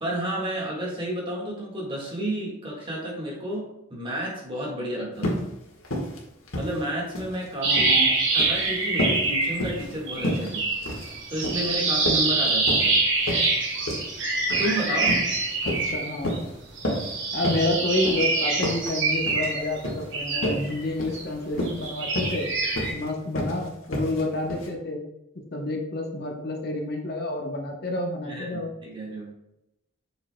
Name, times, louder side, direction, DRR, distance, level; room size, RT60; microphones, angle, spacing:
voice 1, 0.0-5.5 6.5-7.9 8.3-10.7 11.3-13.0 14.6-15.2 28.2-29.3, right 1 dB, 25° right, -2 dB, 1.6 m, -31 dB
sound 1, 5.2-5.5 5.8-6.2 6.5-7.4 7.6-8.0 8.3-8.6 9.0-9.2 9.6-9.9 10.2-10.5 10.8-11.1 11.4-11.7 12.1-12.9 13.3-13.5 13.9-14.1 14.5-14.7 15.0-15.3 15.6-15.9 16.2-16.5 16.8-17.1 17.4-17.7 18.0-18.2 18.6-18.9 19.3-19.5 19.8-20.0 20.4-20.7 21.0-21.2 21.5-21.9 22.2-22.4 22.8-23.0 23.4-23.6 23.9-24.2 24.5-24.7, equal, 80° left, 1.6 m, -29 dB
voice 2, 7.6-8.2 15.6-16.4 17.3-22.5 22.9-25.0 25.5-28.7, left 2 dB, 50° left, 2 dB, 0.8 m, -29 dB
sound 2, 7.6-9.8 10.1-16.4 16.8-21.2 21.6-22.9, right 3 dB, 60° right, 1.6 m, -25 dB
7.8 x 6.2 x 2.2 m, 0.87 s
head